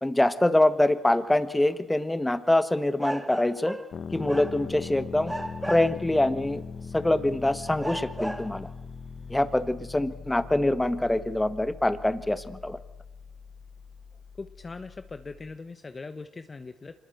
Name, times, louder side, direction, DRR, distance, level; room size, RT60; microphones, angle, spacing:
voice 1, 0.0-3.8 4.1-5.3 5.7-6.6 6.9-8.7 9.3-12.8, left 1 dB, 10° left, 12 dB, 1.5 m, -24 dB
sound 1, 1.5-1.6 3.0-4.0 4.3-4.9 5.3-6.2 7.0-7.1 7.8-8.6, right 1 dB, 5° right, 1.3 m, -35 dB
sound 2, 3.9-15.5, left 5 dB, 55° left, 1.4 m, -41 dB
voice 2, 14.4-16.9, left 3 dB, 30° left, 9 dB, 1.1 m, -41 dB
25.5 x 20.5 x 8.0 m, 0.93 s
cardioid pair, 90°, 0 cm